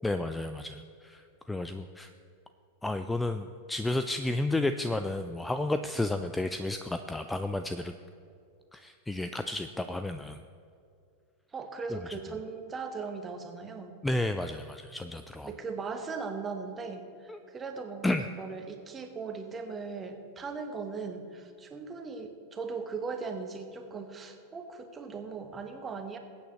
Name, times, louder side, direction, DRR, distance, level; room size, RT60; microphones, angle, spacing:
voice 1, 0.0-2.1 2.8-7.9 8.7-10.4 11.9-12.2 14.0-15.5 17.3-17.4 18.0-18.3, left 2 dB, 5° left, 9 dB, 0.4 m, -32 dB
voice 2, 11.5-13.9 15.4-26.2, right 4 dB, 20° right, 6 dB, 1.3 m, -38 dB
21.0 x 8.5 x 3.2 m, 2.4 s
figure-of-eight pair, 90°, 0 cm